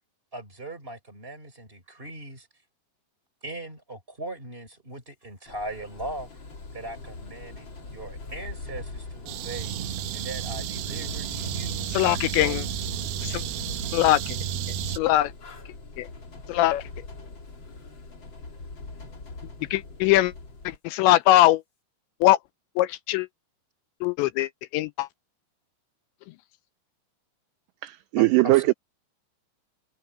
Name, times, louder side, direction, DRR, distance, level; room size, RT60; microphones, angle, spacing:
voice 1, 0.3-2.5 3.4-6.3 6.7-9.7 10.1-11.8 12.3-12.7 28.2-28.7, right 2 dB, 15° right, 3.5 m, -39 dB
sound 1, 5.5-20.8, left 3 dB, 30° left, 3.0 m, -41 dB
sound 2, 9.3-15.0, right 10 dB, 70° right, 2.5 m, -32 dB
voice 2, 11.9-12.6 13.2-13.4 13.9-14.4 14.9-15.3 16.0-16.1 16.5-16.8 19.7-20.3 20.7-21.6 22.2-22.4 22.8-23.3 24.0-25.1, left 15 dB, 80° left, 2.8 m, -21 dB
voice 3, 27.8-28.7, right 22 dB, 85° right, 2.4 m, -20 dB
omnidirectional pair, 5.4 m